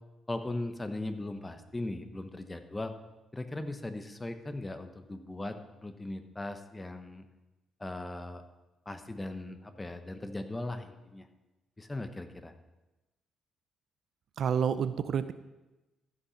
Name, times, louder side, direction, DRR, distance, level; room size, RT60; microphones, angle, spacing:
voice 1, 0.3-2.9 3.3-7.2 7.8-8.4 8.9-11.3 11.8-12.5, left 2 dB, 15° left, 8 dB, 1.0 m, -38 dB
voice 2, 14.4-15.3, right 7 dB, 60° right, 13 dB, 0.5 m, -29 dB
14.0 x 5.7 x 5.7 m, 1.1 s
cardioid pair, 90°, 0 cm